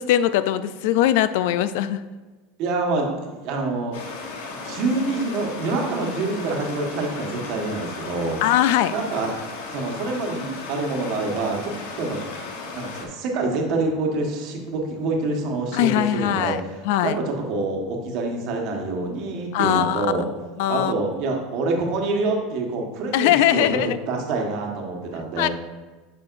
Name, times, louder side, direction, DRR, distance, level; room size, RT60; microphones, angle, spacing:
voice 1, 0.0-2.0 8.4-8.9 15.7-17.2 19.5-20.1 20.6-20.9 23.1-24.0 25.4-25.5, left 12 dB, 70° left, 13 dB, 0.3 m, -21 dB
voice 2, 2.6-3.9 4.5-8.4 8.9-9.3 9.7-12.2 12.7-16.7 17.0-20.3 20.7-23.8 24.1-25.5, right 3 dB, 55° right, 1 dB, 1.3 m, -26 dB
Stream, 3.9-13.1, left 4 dB, 85° left, 1.2 m, -35 dB
7.5 x 5.7 x 2.5 m, 1.3 s
supercardioid pair, 140°, 0 cm